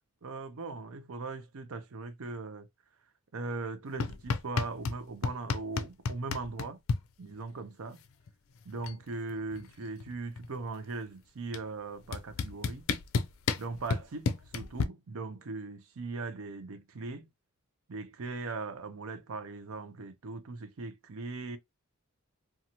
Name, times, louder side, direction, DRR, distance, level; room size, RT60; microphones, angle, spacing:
voice 1, 0.2-2.7 3.3-6.8 7.2-8.0 8.6-12.9 13.6-17.3 17.9-21.6, right 3 dB, 70° right, 0.6 m, -39 dB
sound 1, 4.0-5.0 5.2-7.0 8.3-8.4 8.6-9.0 9.3-10.7 11.5-11.6 12.1-14.8, left 5 dB, 65° left, 0.4 m, -31 dB
2.7 x 2.3 x 2.8 m
head